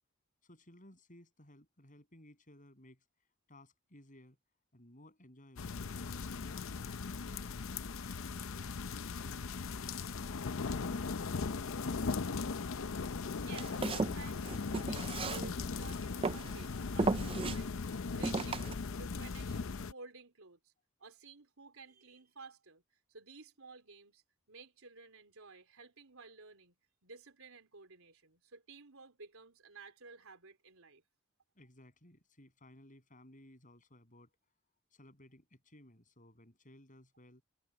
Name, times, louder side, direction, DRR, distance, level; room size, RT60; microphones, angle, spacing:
voice 1, 0.4-3.0 3.5-4.4 4.7-7.5 7.9-10.1 31.6-34.4 34.9-37.4, left 1 dB, 40° left, 7.5 m, -59 dB
sound 1, 5.6-19.9, left 4 dB, 65° left, 0.6 m, -38 dB
voice 2, 13.4-18.7 19.0-19.6 19.9-20.7 21.0-24.2 24.5-26.8 27.0-31.0, right 4 dB, 75° right, 4.0 m, -54 dB
Walk footsteps, 13.5-15.8 16.2-16.6 17.0-17.6 18.2-18.7, right 3 dB, 25° right, 0.4 m, -35 dB
head